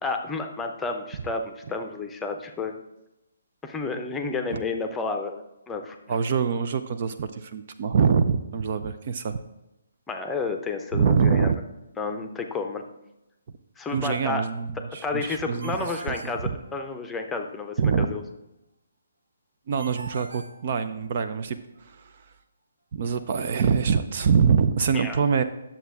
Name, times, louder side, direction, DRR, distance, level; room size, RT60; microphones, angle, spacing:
voice 1, 0.0-2.7 3.6-6.0 10.1-11.5 12.0-12.8 13.8-14.5 14.8-18.2 24.9-25.2, left 4 dB, 10° left, 5 dB, 0.7 m, -31 dB
voice 2, 6.1-9.4 10.9-11.6 13.9-15.8 16.1-16.3 17.8-18.1 19.7-21.6 21.9-22.0 22.9-25.4, right 6 dB, 40° right, 9 dB, 0.5 m, -24 dB
Ringtone, 15.6-17.2 19.8-21.4, right 4 dB, 65° right, 0.9 m, -43 dB
10.0 x 7.2 x 3.5 m, 0.92 s
figure-of-eight pair, 135°, 0 cm